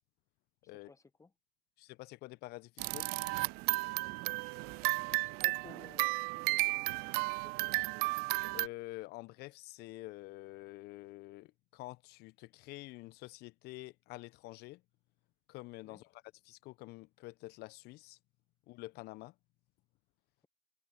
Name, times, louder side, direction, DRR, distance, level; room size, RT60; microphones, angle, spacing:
voice 1, 0.6-1.3 3.8-4.2 4.7-7.5 15.8-16.0, left 3 dB, 15° left, 1.5 m, -59 dB
voice 2, 1.8-3.1 8.5-14.8 15.5-18.2 18.7-19.3, left 20 dB, 55° left, 1.1 m, -48 dB
sound 1, 2.8-8.7, right 28 dB, 55° right, 0.4 m, -33 dB
hypercardioid pair, 70°, 20 cm